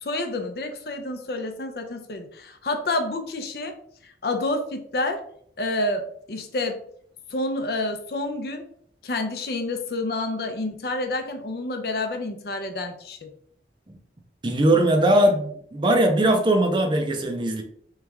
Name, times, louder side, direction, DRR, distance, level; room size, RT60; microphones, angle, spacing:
voice 1, 0.0-3.7 4.0-5.2 5.6-6.8 7.3-8.6 9.0-13.3, left 2 dB, 55° left, 5 dB, 0.6 m, -29 dB
voice 2, 14.4-17.6, right 1 dB, 25° right, 4 dB, 0.5 m, -20 dB
3.6 x 3.2 x 3.4 m, 0.63 s
head